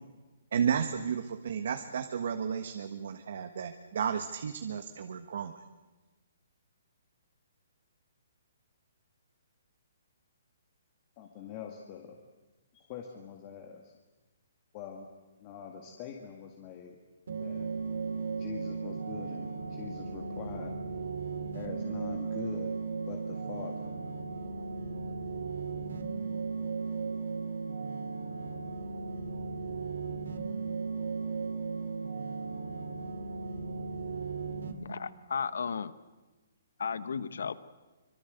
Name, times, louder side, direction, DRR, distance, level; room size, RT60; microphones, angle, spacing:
voice 1, 0.5-5.5, right 7 dB, 55° right, 7 dB, 1.5 m, -33 dB
voice 2, 11.2-12.2 12.7-13.9 14.7-15.1 15.4-17.0 17.4-17.7 18.4-20.8 21.5-22.7 23.1-23.9, left 8 dB, 25° left, 3 dB, 1.9 m, -44 dB
sound 1, 17.3-34.7, right 4 dB, 75° right, 3.1 m, -36 dB
voice 3, 34.8-35.9 36.8-37.6, left 6 dB, 75° left, 15 dB, 1.2 m, -34 dB
25.0 x 23.0 x 8.1 m, 1.2 s
hypercardioid pair, 165°, 0 cm